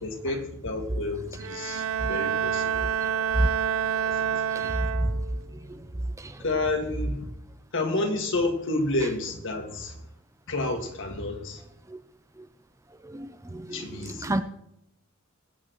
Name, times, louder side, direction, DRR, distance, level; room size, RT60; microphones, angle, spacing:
voice 1, 0.0-2.9 3.7-4.2 6.4-7.3 7.7-10.0 10.5-11.6 13.7-14.4, left 2 dB, 65° left, 4 dB, 1.9 m, -30 dB
Bowed string instrument, 1.3-5.4, right 8 dB, 80° right, 0.6 m, -28 dB
voice 2, 13.1-14.4, right 1 dB, 15° right, 11 dB, 0.5 m, -28 dB
21.5 x 8.8 x 3.1 m, 0.81 s
head